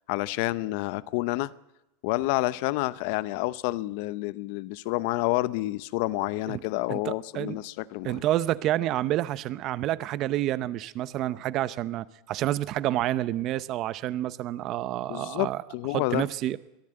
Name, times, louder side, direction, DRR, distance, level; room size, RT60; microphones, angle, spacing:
voice 1, 0.1-1.5 2.0-8.2 15.1-16.2, left 18 dB, 50° left, 18 dB, 0.7 m, -29 dB
voice 2, 6.9-7.6 8.0-15.6 15.9-16.6, right 14 dB, 30° right, 17 dB, 0.7 m, -29 dB
22.5 x 14.5 x 8.9 m, 0.93 s
supercardioid pair, 175°, 0 cm